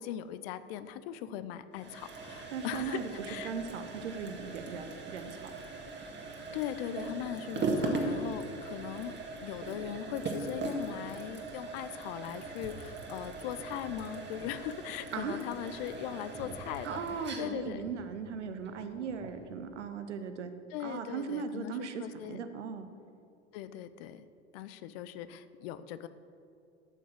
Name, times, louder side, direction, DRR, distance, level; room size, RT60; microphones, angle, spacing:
voice 1, 0.0-3.5 6.5-9.1 9.4-17.0 17.4-17.9 20.7-22.4 23.5-24.3 24.5-26.1, left 11 dB, 55° left, 13 dB, 0.7 m, -39 dB
sound 1, 1.7-19.4, right 3 dB, 30° right, 1.8 m, -39 dB
voice 2, 2.5-5.5 15.1-15.5 16.8-20.5 20.8-22.8, right 6 dB, 80° right, 8 dB, 0.9 m, -38 dB
12.0 x 6.1 x 6.1 m, 2.6 s
hypercardioid pair, 80°, 35 cm